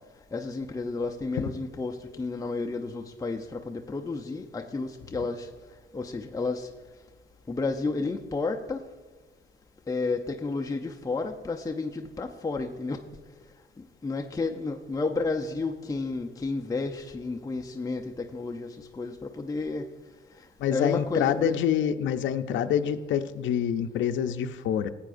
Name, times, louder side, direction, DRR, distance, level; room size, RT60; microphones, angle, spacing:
voice 1, 0.3-5.5 5.9-6.7 7.5-8.8 9.9-13.0 13.8-19.9 20.7-21.6, left 3 dB, 15° left, 2 dB, 0.6 m, -31 dB
voice 2, 20.6-24.9, left 9 dB, 70° left, 8 dB, 0.6 m, -26 dB
15.0 x 8.4 x 2.6 m, 1.4 s
cardioid pair, 90°, 20 cm